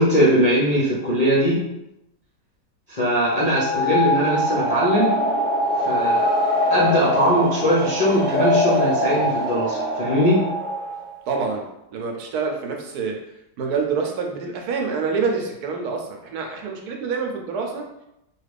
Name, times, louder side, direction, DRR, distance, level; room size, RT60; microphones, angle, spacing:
voice 1, 0.0-1.7 2.9-5.2 5.7-6.2 6.7-10.5, equal, 50° left, -8 dB, 0.4 m, -20 dB
sound 1, 3.4-11.1, equal, 50° right, 0.7 m, -23 dB
voice 2, 11.3-11.6 11.9-13.2 13.6-17.8, right 5 dB, 75° right, 2 dB, 1.1 m, -26 dB
2.8 x 2.4 x 3.3 m, 0.85 s
omnidirectional pair, 1.7 m